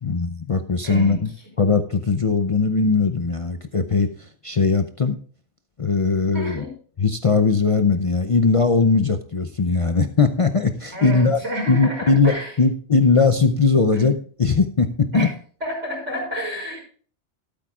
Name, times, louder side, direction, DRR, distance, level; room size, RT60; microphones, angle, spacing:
voice 1, 0.0-1.3 1.6-5.2 5.8-6.6 7.0-11.4 11.7-15.3, left 4 dB, 40° left, 8 dB, 0.5 m, -19 dB
voice 2, 0.8-1.2 6.3-6.7 10.9-12.5 13.9-14.1 15.1-15.3 15.6-16.8, right 1 dB, 80° right, -2 dB, 6.3 m, -29 dB
13.5 x 12.5 x 2.4 m, 0.43 s
omnidirectional pair, 1.2 m